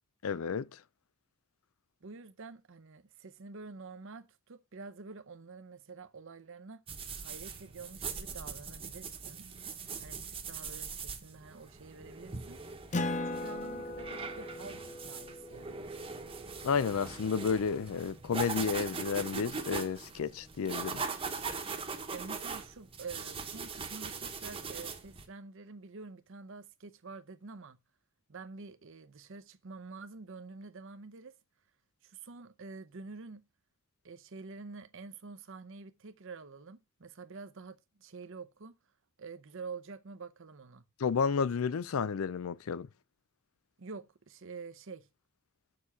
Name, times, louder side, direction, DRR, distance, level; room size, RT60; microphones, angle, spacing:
voice 1, 0.2-0.7 16.6-21.0 41.0-42.9, left 6 dB, 75° left, 0.4 m, -31 dB
voice 2, 2.0-6.8 7.2-9.5 10.0-12.6 13.2-16.0 22.1-27.8 28.3-31.3 32.0-33.5 34.0-38.8 39.2-40.8 43.8-45.1, right 4 dB, 65° right, 0.7 m, -48 dB
sound 1, 6.9-25.3, right 5 dB, 25° right, 1.1 m, -41 dB
Acoustic guitar, 12.9-17.9, left 2 dB, 35° left, 0.6 m, -39 dB
7.0 x 6.8 x 4.8 m
head